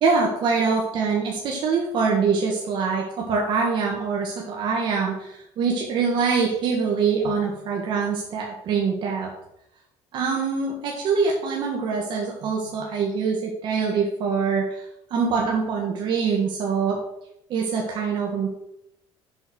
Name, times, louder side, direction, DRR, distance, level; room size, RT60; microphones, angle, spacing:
voice 1, 0.0-9.3 10.1-14.8 15.1-17.0 17.5-18.5, right 5 dB, 55° right, -1 dB, 1.6 m, -24 dB
7.8 x 6.2 x 6.2 m, 0.81 s
cardioid pair, 150°, 10 cm